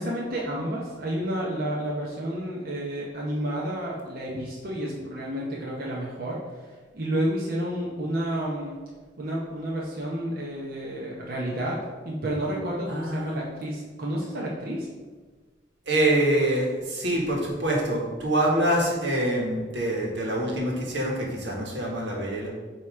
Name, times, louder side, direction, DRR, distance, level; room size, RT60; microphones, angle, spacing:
voice 1, 0.0-6.4 6.7-8.8 9.2-14.9, right 1 dB, 55° right, -4 dB, 0.9 m, -30 dB
voice 2, 12.9-13.4 15.8-22.5, right 1 dB, 85° right, -2 dB, 1.6 m, -25 dB
7.4 x 3.0 x 4.9 m, 1.4 s
head